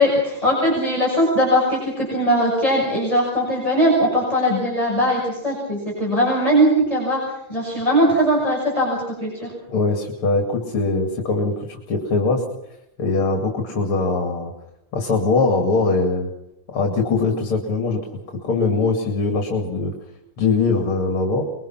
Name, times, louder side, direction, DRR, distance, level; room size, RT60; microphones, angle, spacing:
voice 1, 0.0-7.2 7.5-9.5, equal, 15° left, -4 dB, 6.4 m, -20 dB
voice 2, 9.7-12.4 13.0-14.5 14.9-16.3 16.7-18.1 18.4-19.9 20.4-21.4, left 3 dB, 75° left, 3 dB, 3.4 m, -21 dB
25.0 x 22.0 x 5.9 m, 0.86 s
omnidirectional pair, 2.3 m